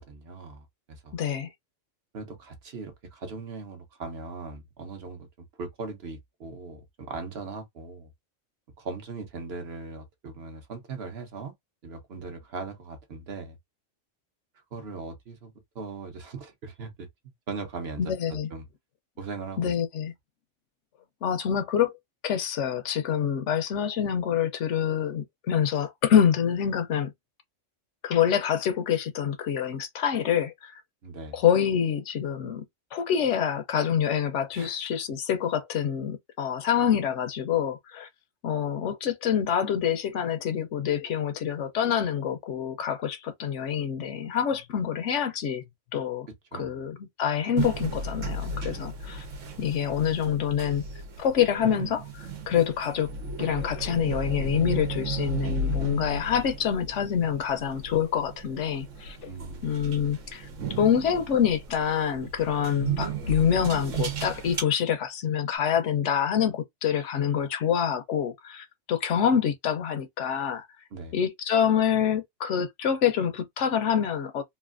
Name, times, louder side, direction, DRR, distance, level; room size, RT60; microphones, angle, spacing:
voice 1, 0.1-1.2 2.1-5.3 5.6-8.1 8.8-11.5 11.8-13.6 14.7-17.1 17.5-18.7 19.2-19.7 31.0-31.4 34.5-34.8 46.5-46.8 59.3-59.8 70.9-71.2, right 4 dB, 60° right, 1.0 m, -39 dB
voice 2, 1.1-1.5 18.0-18.5 19.6-20.1 21.2-22.0 22.2-27.1 28.0-30.8 31.3-32.6 32.9-38.1 38.4-46.3 46.5-49.3 49.6-50.8 51.2-53.1 53.4-59.3 59.6-60.5 60.8-70.7 71.1-74.4, left 8 dB, 75° left, 1.0 m, -26 dB
sound 1, 47.6-64.6, right 3 dB, 90° right, 1.2 m, -34 dB
3.2 x 2.6 x 2.4 m
omnidirectional pair, 1.2 m